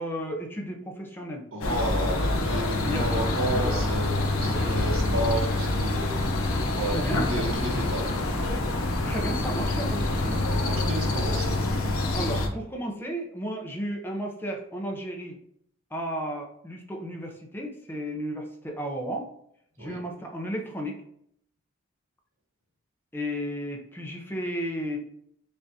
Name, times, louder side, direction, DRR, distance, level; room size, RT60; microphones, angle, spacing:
voice 1, 0.0-1.4 2.8-3.2 3.5-3.9 4.4-5.2 6.8-7.9 9.1-10.4 12.1-15.4 15.9-19.3 19.8-21.0 23.1-25.0, equal, 10° left, 2 dB, 0.5 m, -34 dB
voice 2, 1.5-6.2 6.7-8.1 10.3-11.6 19.8-20.0, right 1 dB, 70° right, -1 dB, 1.1 m, -32 dB
sound 1, 1.6-12.5, left 2 dB, 80° left, 0.7 m, -26 dB
5.3 x 2.5 x 2.7 m, 0.71 s
head